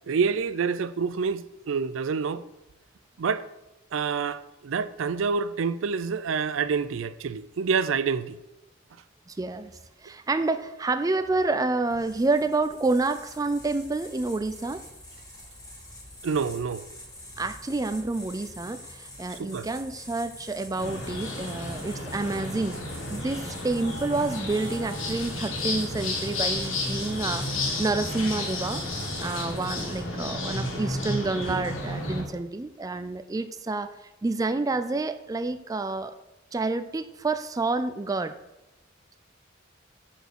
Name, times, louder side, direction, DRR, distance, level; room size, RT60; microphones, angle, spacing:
voice 1, 0.1-2.4 3.2-3.5 3.9-8.4 16.2-16.9 19.4-19.7 31.5-31.7, right 5 dB, 80° right, 0.4 m, -27 dB
voice 2, 9.3-9.7 10.0-14.8 17.4-22.8 23.1-28.8 29.2-33.9 34.2-36.1 36.5-38.3, right 3 dB, 20° right, 0.3 m, -28 dB
sound 1, 11.9-30.2, left 1 dB, 20° left, 2.1 m, -45 dB
sound 2, 20.8-32.2, left 2 dB, 90° left, 2.0 m, -32 dB
9.1 x 4.4 x 6.8 m
head